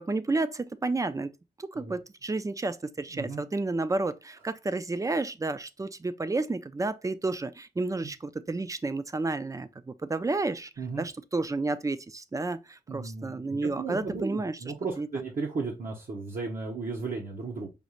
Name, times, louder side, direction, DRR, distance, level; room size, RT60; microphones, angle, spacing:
voice 1, 0.0-1.3 1.6-10.7 11.0-14.6 15.0-15.1, right 3 dB, 20° right, 0.3 m, -31 dB
voice 2, 3.1-3.4 8.0-8.1 10.8-11.1 12.9-17.7, right 4 dB, 55° right, 0.8 m, -35 dB
5.1 x 2.4 x 2.9 m
wide cardioid pair, 90°, 17 cm